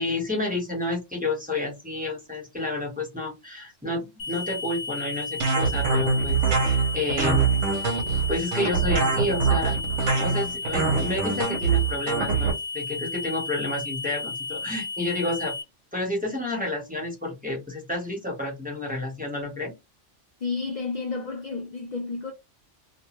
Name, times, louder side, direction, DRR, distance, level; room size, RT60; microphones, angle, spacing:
voice 1, 0.0-7.5 8.3-9.8 10.2-15.5 15.9-19.7, left 2 dB, 10° right, 0.9 m, -30 dB
sound 1, 4.2-15.6, left 3 dB, 90° left, 1.1 m, -34 dB
sound 2, 5.4-12.5, right 5 dB, 80° right, 1.0 m, -24 dB
voice 2, 20.4-22.3, left 4 dB, 60° left, 0.4 m, -31 dB
2.7 x 2.2 x 3.0 m
omnidirectional pair, 1.3 m